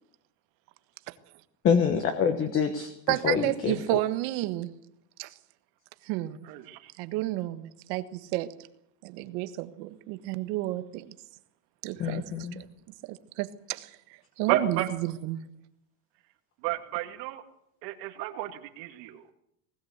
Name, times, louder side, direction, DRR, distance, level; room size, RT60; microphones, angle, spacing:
voice 1, 1.6-4.0 12.0-12.6, left 6 dB, 25° left, 1.3 m, -26 dB
voice 2, 3.1-4.7 5.2-5.3 6.0-6.4 7.0-8.5 9.0-11.1 11.8-12.7 13.0-14.0 14.4-15.4, right 16 dB, 65° right, 1.6 m, -31 dB
voice 3, 6.4-6.9 11.9-12.2 14.5-14.9 16.6-17.4 17.8-19.2, right 13 dB, 85° right, 2.6 m, -32 dB
20.0 x 17.0 x 8.1 m
cardioid pair, 180°, 49 cm